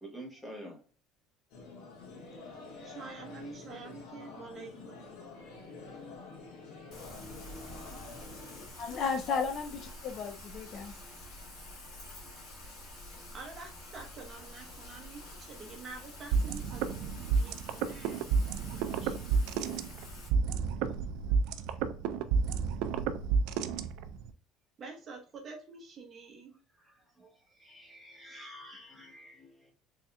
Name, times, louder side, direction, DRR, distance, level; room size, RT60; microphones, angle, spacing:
voice 1, 0.0-0.8 26.8-29.7, equal, 5° left, 1.2 m, -49 dB
sound 1, 1.5-8.7, left 3 dB, 75° left, 1.6 m, -47 dB
voice 2, 2.8-5.1 13.3-18.3 18.6-19.2 24.8-26.5, right 4 dB, 30° right, 0.9 m, -47 dB
Rain, 6.9-20.3, left 1 dB, 55° left, 1.7 m, -48 dB
voice 3, 8.8-10.9, left 5 dB, 40° left, 0.4 m, -34 dB
sound 2, 16.3-24.3, right 5 dB, 70° right, 0.4 m, -30 dB
4.1 x 3.5 x 2.2 m
cardioid pair, 165°, 0 cm